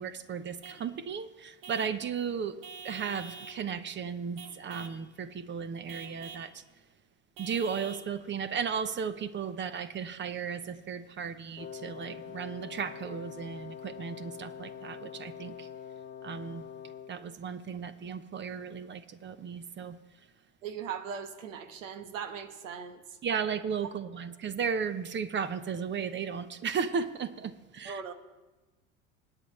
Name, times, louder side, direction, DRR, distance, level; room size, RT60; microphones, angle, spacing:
voice 1, 0.0-2.6 2.8-6.6 7.4-15.7 16.2-16.7 17.1-20.0 23.2-28.0, right 6 dB, 30° right, 13 dB, 0.9 m, -35 dB
Vehicle horn car horn honking / Truck, 0.6-0.9 1.6-2.0 2.6-3.6 4.4-5.0 5.9-6.5 7.4-8.1, right 5 dB, 60° right, 1.3 m, -46 dB
Wind instrument woodwind instrument, 11.6-17.3, left 8 dB, 25° left, 0.8 m, -44 dB
voice 2, 20.6-23.0 27.8-28.1, right 7 dB, 80° right, 9 dB, 1.3 m, -39 dB
20.5 x 9.1 x 3.3 m, 1.2 s
hypercardioid pair, 80°, 38 cm